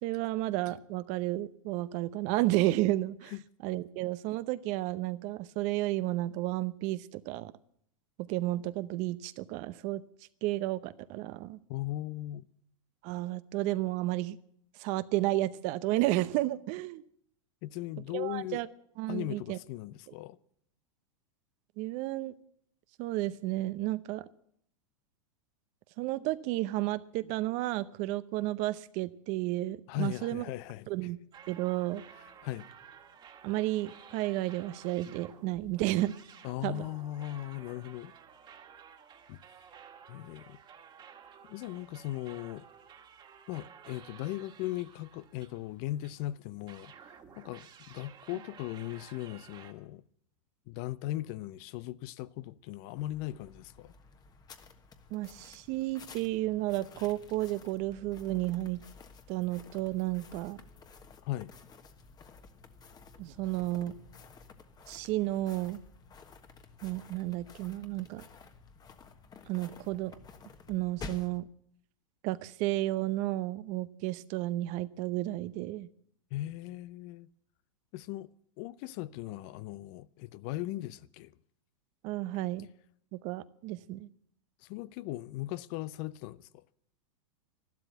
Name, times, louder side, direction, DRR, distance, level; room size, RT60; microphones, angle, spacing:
voice 1, 0.0-3.3 3.6-7.5 8.2-10.0 10.4-11.6 13.0-14.4 14.8-17.0 18.1-18.7 19.0-19.6 21.8-22.3 23.0-24.2 26.0-30.4 30.9-31.2 31.5-32.0 33.4-36.1 36.6-36.9 55.1-58.8 59.3-60.6 63.2-63.9 64.9-65.8 66.8-68.2 69.5-70.1 70.7-71.5 72.2-75.9 82.0-82.7 83.1-84.1, right 17 dB, 45° right, 0.8 m, -32 dB
voice 2, 11.7-12.5 17.6-18.6 19.1-20.4 29.9-31.1 32.4-32.7 36.4-38.1 39.3-39.4 40.1-40.6 41.5-42.7 43.5-50.0 50.7-53.9 61.2-61.5 76.3-77.3 77.9-78.3 78.6-81.3 84.6-86.6, left 15 dB, 50° left, 0.6 m, -38 dB
sound 1, 31.3-46.2 46.7-49.7, right 7 dB, 30° right, 1.8 m, -54 dB
sound 2, 53.0-71.4, left 4 dB, 25° left, 1.3 m, -52 dB
13.0 x 12.0 x 7.9 m
hypercardioid pair, 110°, 17 cm